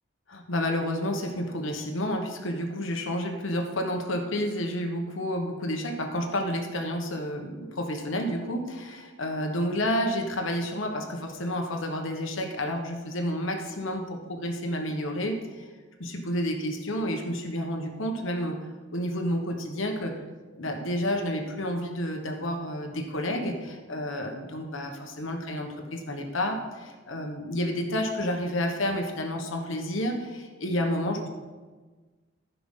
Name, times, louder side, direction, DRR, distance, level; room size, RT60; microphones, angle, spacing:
voice 1, 0.3-15.7 16.0-20.2 20.6-31.3, equal, 80° left, 3 dB, 1.3 m, -30 dB
14.5 x 5.8 x 3.8 m, 1.4 s
head